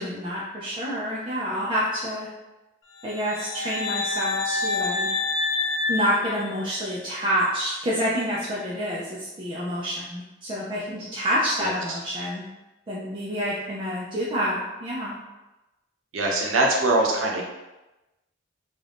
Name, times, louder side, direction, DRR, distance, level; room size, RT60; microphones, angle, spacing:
voice 1, 0.0-2.3 3.0-5.1 5.9-12.4 12.9-15.2, equal, 25° right, -7 dB, 0.4 m, -28 dB
sound 1, 3.0-7.0, left 3 dB, 65° left, 0.4 m, -28 dB
voice 2, 16.1-17.5, right 2 dB, 85° right, -1 dB, 0.7 m, -22 dB
2.5 x 2.3 x 3.3 m, 1.0 s
head